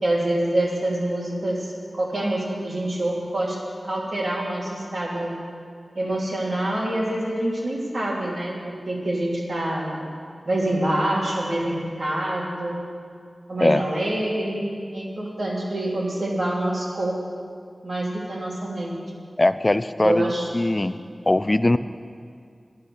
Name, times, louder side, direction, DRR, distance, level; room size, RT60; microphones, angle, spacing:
voice 1, 0.0-3.6 3.8-5.3 5.9-10.1 10.4-12.8 13.5-17.2 17.8-19.0 20.0-20.5, right 1 dB, 80° right, -4 dB, 3.1 m, -26 dB
voice 2, 19.4-21.0 21.3-21.8, left 1 dB, 30° left, 13 dB, 0.4 m, -21 dB
11.0 x 10.5 x 6.9 m, 2.2 s
wide cardioid pair, 75°, 0 cm